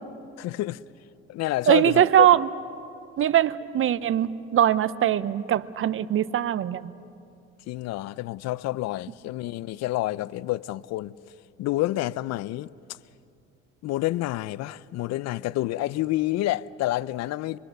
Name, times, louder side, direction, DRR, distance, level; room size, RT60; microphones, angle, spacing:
voice 1, 0.4-0.8 1.3-2.3 7.7-11.2 11.6-12.7 13.8-17.6, left 16 dB, 60° left, 0.5 m, -28 dB
voice 2, 1.7-2.5 3.2-6.9, right 11 dB, 45° right, 0.8 m, -21 dB
25.0 x 24.5 x 6.6 m
supercardioid pair, 90°, 31 cm